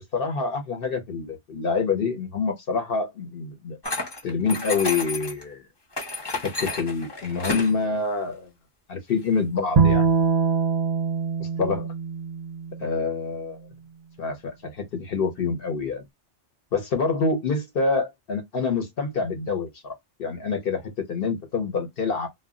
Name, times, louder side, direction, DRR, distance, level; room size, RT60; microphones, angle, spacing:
voice 1, 0.1-5.6 6.4-8.5 8.9-10.1 11.4-11.9 12.8-13.6 14.2-16.0 16.7-22.3, left 4 dB, 55° left, 0.9 m, -27 dB
sound 1, 3.8-5.4 5.9-7.7, left 2 dB, 25° left, 0.7 m, -31 dB
Bowed string instrument, 9.8-13.0, right 5 dB, 50° right, 0.5 m, -23 dB
2.2 x 2.2 x 3.6 m
omnidirectional pair, 1.2 m